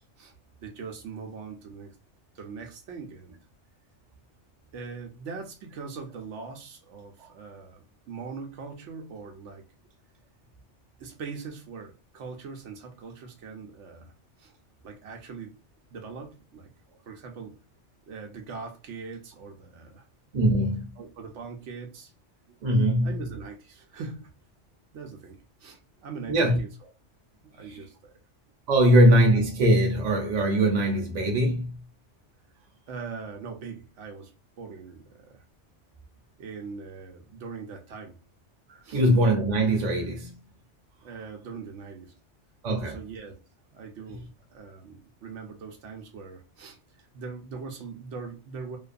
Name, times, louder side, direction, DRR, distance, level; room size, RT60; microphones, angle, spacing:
voice 1, 0.6-2.0 2.3-3.4 4.7-9.6 11.0-14.1 14.4-14.6 14.8-15.6 15.9-16.7 17.1-17.6 18.1-20.1 21.0-22.1 23.0-24.3 24.9-26.7 27.4-28.1 32.9-35.4 36.4-38.2 38.8-39.0 41.0-42.1 42.8-43.4 43.7-48.8, right 5 dB, 80° right, 1.0 m, -41 dB
voice 2, 20.3-20.9 22.6-23.2 26.3-26.6 27.7-27.8 28.7-31.8 38.7-40.4 42.6-43.0, right 1 dB, 40° right, 0.8 m, -22 dB
2.5 x 2.3 x 2.4 m
omnidirectional pair, 1.2 m